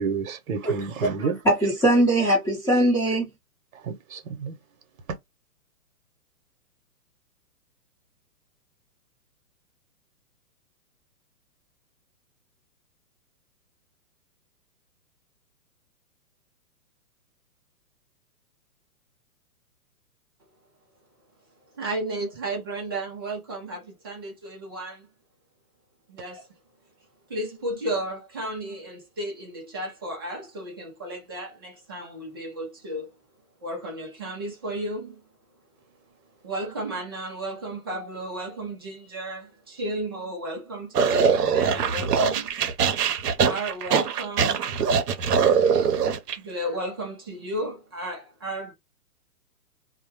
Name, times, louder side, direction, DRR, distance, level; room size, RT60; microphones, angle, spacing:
voice 1, 0.0-1.4 3.8-4.6, right 5 dB, 60° right, 0.9 m, -30 dB
voice 2, 1.2-3.3, right 1 dB, 10° left, 0.8 m, -21 dB
voice 3, 21.7-25.1 26.1-26.5 27.3-33.1 33.6-35.2 36.4-42.6 43.4-44.6 46.4-48.7, right 1 dB, 15° right, 0.4 m, -33 dB
sound 1, 40.9-46.4, right 6 dB, 80° right, 0.7 m, -22 dB
2.2 x 2.1 x 2.9 m
hypercardioid pair, 135°, 46 cm